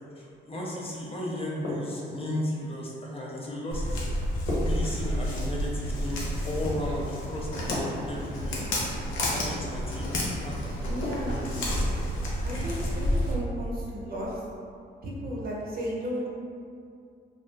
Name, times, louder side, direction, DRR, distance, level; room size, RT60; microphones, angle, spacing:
voice 1, 0.2-6.2 6.4-9.0 9.3-10.9 11.3-11.7, left 1 dB, 30° left, -4 dB, 0.5 m, -35 dB
sound 1, 1.6-2.4 4.5-5.5 7.7-8.5 11.0-11.7, left 1 dB, 55° left, 1.0 m, -35 dB
Walk footsteps, 3.7-13.3, equal, 75° left, 0.6 m, -30 dB
voice 2, 10.8-11.4 12.4-14.4 15.0-16.3, equal, 50° right, -5 dB, 0.7 m, -34 dB
2.4 x 2.0 x 3.2 m, 2.4 s
cardioid pair, 90°, 20 cm